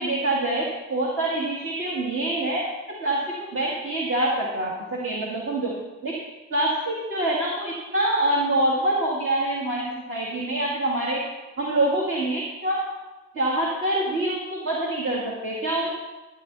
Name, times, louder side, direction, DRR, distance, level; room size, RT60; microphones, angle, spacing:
voice 1, 0.0-2.6 2.9-5.7 6.0-6.1 6.5-11.2 11.6-12.8 13.3-15.9, right 1 dB, 45° right, -3 dB, 2.3 m, -25 dB
13.5 x 9.7 x 4.1 m, 1.2 s
cardioid pair, 115°, 29 cm